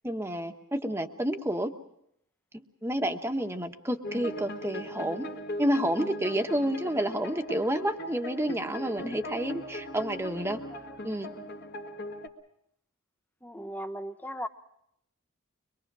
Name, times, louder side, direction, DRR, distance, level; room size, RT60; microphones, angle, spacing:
voice 1, 0.0-1.7 2.5-5.3 5.6-10.6 11.0-11.3, right 1 dB, 10° right, 6 dB, 1.2 m, -30 dB
sound 1, 4.0-12.3, left 1 dB, 50° left, 1.7 m, -39 dB
voice 2, 13.4-14.5, equal, 10° left, 9 dB, 0.8 m, -38 dB
24.0 x 22.0 x 6.1 m, 0.76 s
head